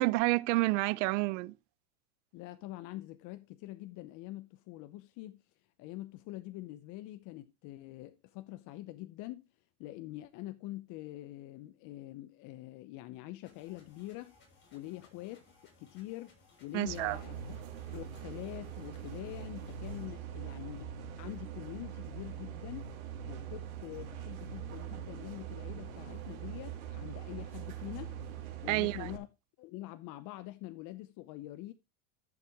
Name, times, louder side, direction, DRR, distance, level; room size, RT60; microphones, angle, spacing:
voice 1, 0.0-1.5 16.7-17.2 28.7-29.1, right 22 dB, 60° right, 0.7 m, -29 dB
voice 2, 2.3-5.4 5.8-9.5 9.8-14.3 14.7-17.4 17.9-23.0 23.3-28.2 28.6-29.3 29.6-31.7, left 16 dB, 45° left, 0.8 m, -45 dB
sound 1, 13.4-20.0, left 3 dB, 25° left, 6.8 m, -64 dB
sound 2, 16.9-29.2, right 8 dB, 85° right, 2.9 m, -43 dB
14.5 x 7.2 x 3.0 m
supercardioid pair, 120°, 42 cm